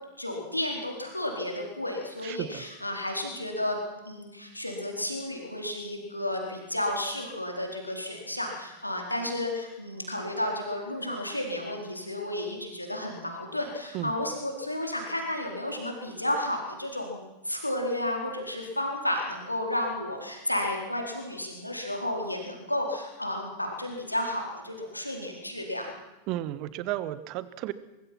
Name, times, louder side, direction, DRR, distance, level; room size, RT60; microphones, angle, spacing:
voice 1, 0.2-17.2 17.4-25.9, left 1 dB, 85° left, 1 dB, 4.3 m, -32 dB
voice 2, 2.2-2.6 13.9-14.1 26.3-27.7, right 14 dB, 40° right, 15 dB, 1.4 m, -33 dB
23.5 x 23.0 x 6.0 m, 1.0 s
figure-of-eight pair, 90°, 0 cm